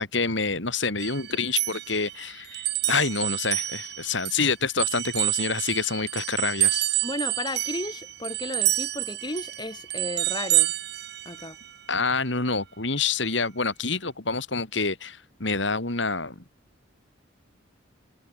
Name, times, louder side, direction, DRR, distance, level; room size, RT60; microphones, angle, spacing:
voice 1, 0.0-6.8 11.9-16.3, left 4 dB, 70° left, 3.3 m, -27 dB
sound 1, 1.0-4.5 4.8-11.7, right 15 dB, 55° right, 6.6 m, -28 dB
voice 2, 7.0-10.7 11.2-11.6, left 1 dB, 20° left, 4.7 m, -34 dB
head